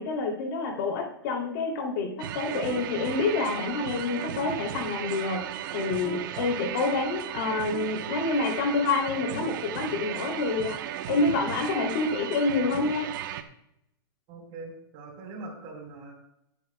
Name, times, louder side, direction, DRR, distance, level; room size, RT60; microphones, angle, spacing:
voice 1, 0.0-5.4 5.7-10.8 11.1-13.1, left 3 dB, 55° left, 1 dB, 2.6 m, -28 dB
sound 1, 2.2-13.4, right 11 dB, 55° right, 0.9 m, -35 dB
voice 2, 14.3-16.2, right 3 dB, 40° right, 2 dB, 3.9 m, -42 dB
21.0 x 8.4 x 2.2 m, 0.81 s
hypercardioid pair, 140°, 13 cm